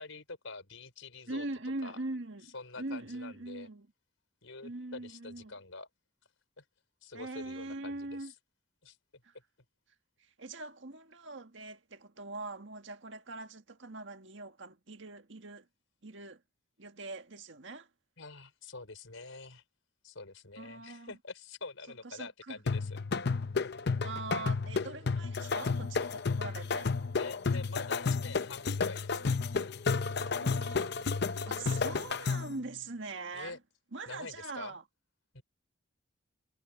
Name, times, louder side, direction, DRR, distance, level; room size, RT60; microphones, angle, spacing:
voice 1, 0.0-1.4 1.8-2.0 2.5-3.7 4.4-5.9 6.6-6.7 7.0-8.3 8.8-9.0 18.2-19.6 20.0-23.0 27.2-29.4 33.3-33.6 34.1-34.7 35.3-35.4, left 3 dB, 80° left, 4.5 m, -46 dB
voice 2, 1.3-3.9 4.6-5.5 7.1-8.3 9.2-9.3 10.2-15.7 16.0-16.4 16.8-17.9 20.6-21.1 22.0-22.6 24.0-26.9 30.4-33.6 33.9-34.8, right 2 dB, 65° right, 1.8 m, -42 dB
sound 1, 22.7-32.6, left 4 dB, 55° left, 0.6 m, -32 dB
head